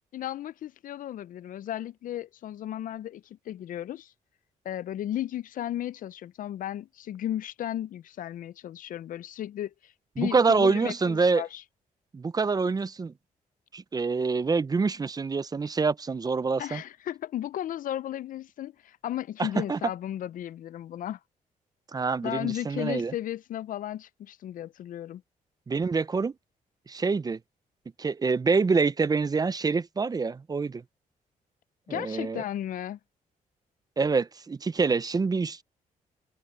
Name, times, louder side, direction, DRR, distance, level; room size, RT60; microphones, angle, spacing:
voice 1, 0.1-4.1 4.6-11.6 16.6-21.2 22.2-25.2 31.9-33.0, left 12 dB, 65° left, 0.5 m, -35 dB
voice 2, 10.2-11.4 12.1-13.1 13.7-16.8 19.4-19.8 21.9-23.1 25.7-26.3 26.9-27.4 28.0-30.8 31.9-32.4 34.0-35.6, right 4 dB, 25° right, 0.5 m, -26 dB
open air
cardioid pair, 95°, 15 cm